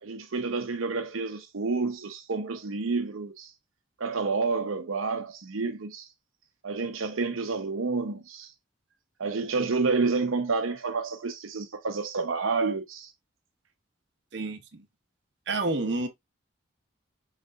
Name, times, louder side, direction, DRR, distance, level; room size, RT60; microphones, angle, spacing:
voice 1, 0.0-3.5 4.0-6.1 6.6-8.5 9.2-13.1, right 4 dB, 90° right, 0.7 m, -29 dB
voice 2, 15.5-16.1, right 2 dB, 60° right, 0.8 m, -28 dB
6.5 x 3.3 x 2.4 m
head